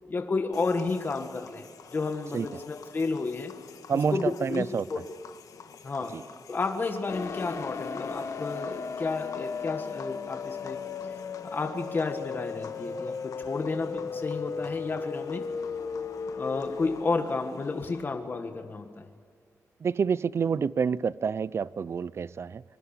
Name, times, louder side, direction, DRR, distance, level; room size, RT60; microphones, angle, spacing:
voice 1, 0.1-1.6 1.9-3.5 4.1-5.0 5.8-6.2 6.5-10.8 11.4-15.5 16.4-19.1, left 3 dB, 35° left, 6 dB, 1.5 m, -31 dB
sound 1, 0.5-18.0, left 6 dB, 90° left, 1.4 m, -49 dB
voice 2, 3.9-4.9 6.1-6.2 19.8-22.6, right 6 dB, 50° right, 19 dB, 0.5 m, -28 dB
sound 2, 7.1-17.0, left 5 dB, 55° left, 1.4 m, -36 dB
25.5 x 21.0 x 7.2 m, 2.2 s
wide cardioid pair, 150°, 6 cm